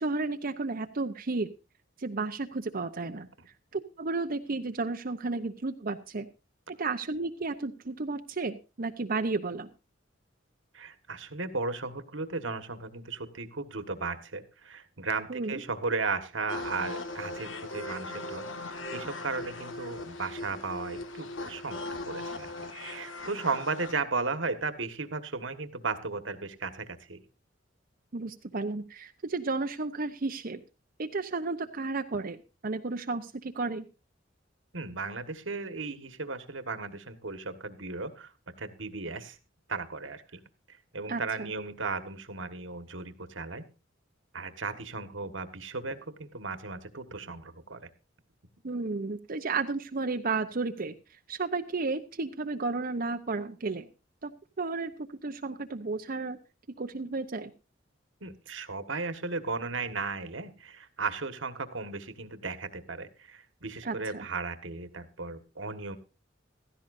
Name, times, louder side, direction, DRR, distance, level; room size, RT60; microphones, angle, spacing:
voice 1, 0.0-1.5 2.0-3.3 3.7-6.3 6.8-9.7 15.3-15.6 28.1-30.6 31.0-32.4 32.6-33.8 41.1-41.2 48.6-50.9 51.3-53.9 54.2-54.3 54.6-54.9 55.2-56.4 56.8-57.5 63.8-64.2, right 3 dB, 50° right, 6 dB, 0.8 m, -32 dB
voice 2, 10.7-21.8 22.0-27.2 34.7-38.3 38.6-39.4 39.7-40.4 40.7-43.6 44.3-47.9 58.2-66.0, right 4 dB, 75° right, 10 dB, 1.6 m, -35 dB
sound 1, 16.5-23.9, left 2 dB, 80° left, 1.6 m, -39 dB
16.0 x 14.0 x 2.6 m, 0.31 s
head